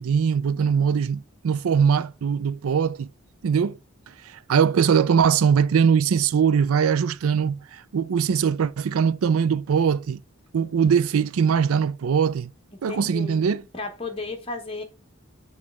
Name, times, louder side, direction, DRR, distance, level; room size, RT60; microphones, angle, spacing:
voice 1, 0.0-3.1 3.4-3.8 4.5-10.2 10.5-12.5 12.8-13.6, right 7 dB, 80° right, 0.4 m, -21 dB
voice 2, 0.5-1.0 12.9-13.4 13.7-14.8, left 3 dB, 25° left, 1.1 m, -34 dB
7.3 x 3.2 x 4.7 m
head